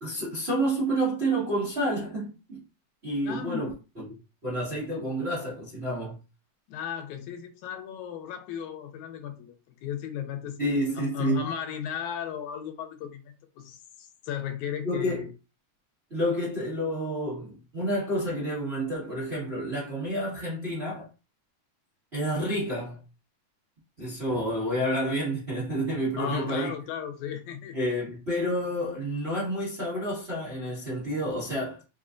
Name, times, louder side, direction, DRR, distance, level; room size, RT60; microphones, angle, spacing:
voice 1, 0.0-2.6 3.0-3.7 4.4-6.2 10.6-11.4 14.8-15.2 16.1-21.1 22.1-23.0 24.0-26.7 27.7-31.8, right 1 dB, 45° right, 0.8 m, -29 dB
voice 2, 3.3-3.7 6.7-9.6 9.8-10.6 11.0-15.3 26.2-27.8, left 9 dB, 85° left, 2.1 m, -35 dB
4.6 x 2.2 x 2.5 m
omnidirectional pair, 3.3 m